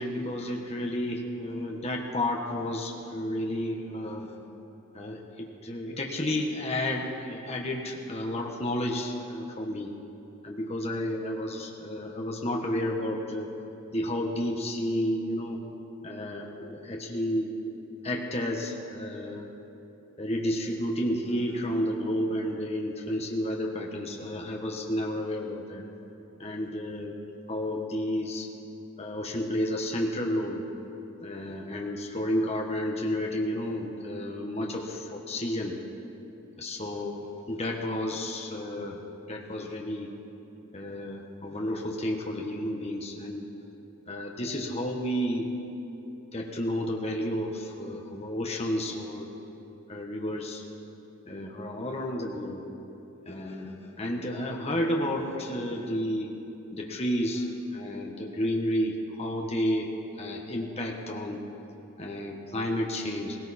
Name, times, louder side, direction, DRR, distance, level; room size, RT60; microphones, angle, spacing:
voice 1, 0.0-4.4 4.9-9.9 10.4-13.5 13.9-15.6 16.0-17.8 18.0-19.5 20.2-25.8 26.4-27.2 27.5-28.5 29.0-30.6 31.2-35.8 36.6-40.1 40.7-43.5 44.1-45.5 46.3-49.3 49.9-50.6 51.3-52.6 53.3-56.3 56.7-59.9 60.2-61.4 62.0-63.4, left 1 dB, 30° left, 0 dB, 1.2 m, -31 dB
17.5 x 17.0 x 4.3 m, 2.9 s
head